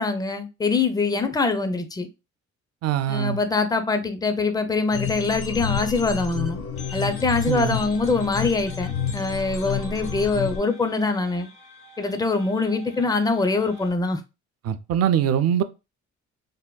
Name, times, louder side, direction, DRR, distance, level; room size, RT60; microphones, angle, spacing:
voice 1, 0.0-2.1 3.1-6.6 6.9-11.5 12.0-14.2, left 3 dB, 15° left, 0.4 m, -24 dB
voice 2, 2.8-3.4 7.5-7.8 14.6-15.6, right 9 dB, 55° right, 0.4 m, -22 dB
sound 1, 4.9-10.6, left 8 dB, 50° left, 0.7 m, -30 dB
sound 2, 6.8-13.9, equal, 80° left, 1.1 m, -47 dB
3.4 x 2.1 x 2.2 m
cardioid pair, 90°, 30 cm